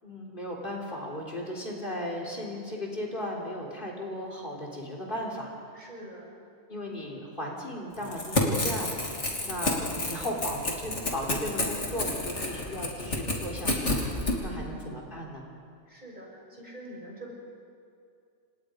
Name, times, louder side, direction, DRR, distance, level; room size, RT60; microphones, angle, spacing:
voice 1, 0.0-5.5 6.7-14.1 14.4-15.5, left 1 dB, 45° left, -1 dB, 3.8 m, -36 dB
voice 2, 5.7-6.4 6.8-6.9 12.4-12.8 14.5-14.9 15.9-17.3, right 1 dB, 40° right, -3 dB, 6.9 m, -45 dB
Crackle / Tearing, 8.0-14.4, left 2 dB, 70° left, 3.5 m, -29 dB
29.5 x 27.5 x 5.2 m, 2.4 s
omnidirectional pair, 1.2 m